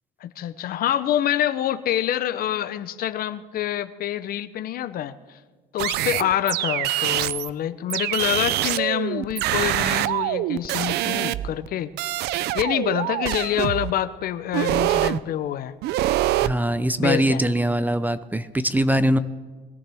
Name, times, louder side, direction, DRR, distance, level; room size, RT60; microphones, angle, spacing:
voice 1, 0.2-5.4 5.7-11.9 12.5-15.7 17.0-17.4, left 11 dB, 60° left, 13 dB, 0.7 m, -26 dB
sound 1, 5.8-7.5 7.9-11.7 12.0-13.9 14.5-15.2 15.8-16.5, right 14 dB, 75° right, 0.4 m, -24 dB
voice 2, 16.4-19.2, right 1 dB, 10° right, 13 dB, 0.5 m, -22 dB
21.0 x 14.0 x 3.5 m, 1.4 s
cardioid pair, 110°, 17 cm